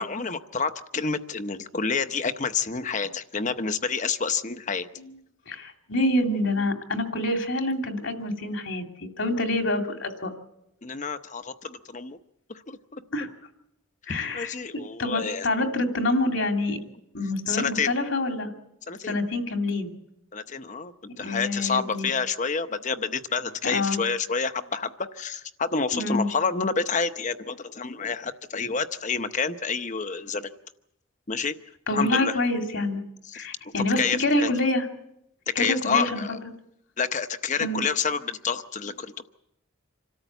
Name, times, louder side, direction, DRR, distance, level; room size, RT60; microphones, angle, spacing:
voice 1, 0.0-4.9 10.8-12.2 12.7-13.0 14.1-15.5 17.5-17.9 18.9-19.2 20.3-30.5 31.3-31.5 31.9-32.4 33.3-33.4 34.0-34.5 35.5-36.4 37.0-39.3, left 5 dB, 40° left, 10 dB, 0.9 m, -28 dB
voice 2, 5.5-10.3 13.1-13.3 14.1-16.8 17.1-18.5 19.0-19.9 21.2-22.1 23.6-24.0 25.9-26.3 31.9-33.0 33.3-34.9 35.6-36.2 37.6-37.8, left 1 dB, 75° left, 4 dB, 2.6 m, -27 dB
26.5 x 13.5 x 8.2 m, 0.81 s
head